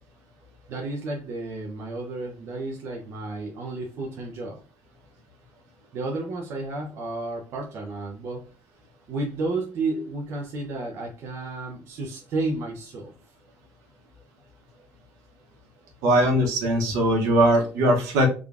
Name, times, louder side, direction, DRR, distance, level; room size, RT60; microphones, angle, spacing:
voice 1, 0.7-4.6 5.9-8.5 9.1-13.1, right 2 dB, 45° right, -1 dB, 0.7 m, -32 dB
voice 2, 16.0-18.3, right 1 dB, 70° right, 2 dB, 1.2 m, -20 dB
3.7 x 2.4 x 3.4 m, 0.36 s
cardioid pair, 170°, 6 cm